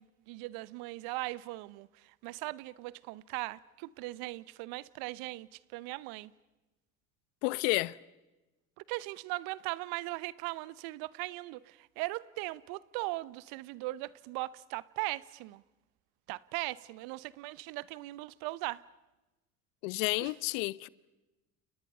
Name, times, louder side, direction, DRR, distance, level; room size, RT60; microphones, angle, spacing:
voice 1, 0.0-6.3 8.9-15.6 16.3-18.8 20.2-20.3, right 20 dB, 60° right, 0.9 m, -39 dB
voice 2, 7.4-8.0 19.8-20.9, left 23 dB, 65° left, 0.8 m, -31 dB
30.0 x 29.5 x 5.6 m
hypercardioid pair, 70°, 40 cm